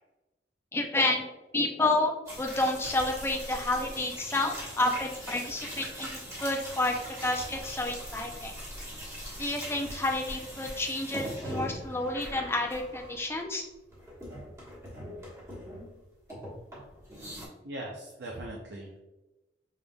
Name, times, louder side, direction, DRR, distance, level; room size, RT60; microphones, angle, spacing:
voice 1, 0.7-1.2 1.5-6.1 6.4-6.9 7.2-8.5 9.4-13.6, left 2 dB, 15° left, 2 dB, 0.5 m, -30 dB
sound 1, 2.3-13.6 13.9-16.0 16.3-17.5, equal, 15° right, 1.3 m, -41 dB
voice 2, 17.6-19.0, right 1 dB, 70° right, 0 dB, 0.6 m, -40 dB
5.5 x 3.5 x 2.3 m, 1.0 s
head